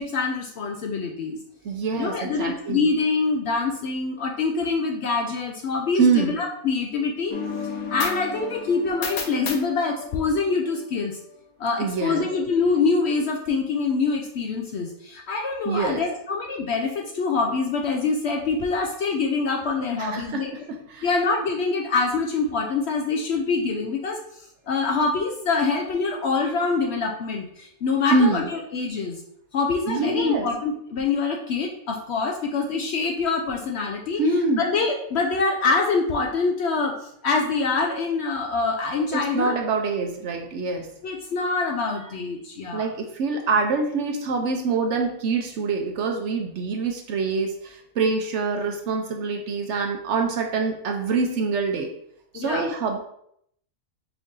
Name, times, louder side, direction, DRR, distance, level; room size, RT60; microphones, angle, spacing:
voice 1, 0.0-1.4 1.9-7.4 7.9-11.2 11.6-20.5 21.0-29.2 29.5-34.2 34.6-39.5 41.0-42.9 52.3-52.7, left 4 dB, 65° left, 2 dB, 0.7 m, -25 dB
voice 2, 1.6-2.9 6.0-6.3 11.8-12.3 15.7-16.0 20.0-21.1 28.1-28.5 29.9-30.5 34.2-34.6 39.1-40.9 42.7-51.9 52.3-53.0, right 4 dB, 65° right, 3 dB, 0.8 m, -25 dB
sound 1, 7.3-10.9, left 5 dB, 85° left, 1.2 m, -33 dB
4.7 x 2.6 x 3.6 m, 0.71 s
omnidirectional pair, 1.5 m